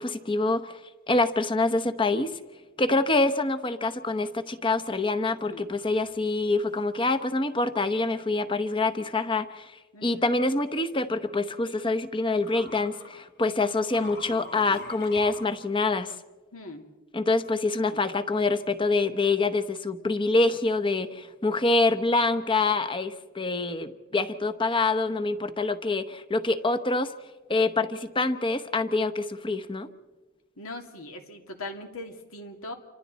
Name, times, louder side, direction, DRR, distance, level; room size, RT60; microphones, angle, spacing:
voice 1, 0.0-2.4 2.8-16.1 17.1-27.1 27.5-29.9, left 3 dB, 25° left, 9 dB, 1.0 m, -26 dB
sound 1, 6.3-6.4 6.7-6.8 11.2-11.3 12.4-13.1 13.8-15.4, left 3 dB, 55° left, 4.9 m, -44 dB
voice 2, 9.9-10.3 16.5-16.8 17.9-18.0 30.6-32.7, left 2 dB, 80° left, 4 dB, 2.5 m, -40 dB
28.5 x 25.0 x 4.1 m, 1.2 s
head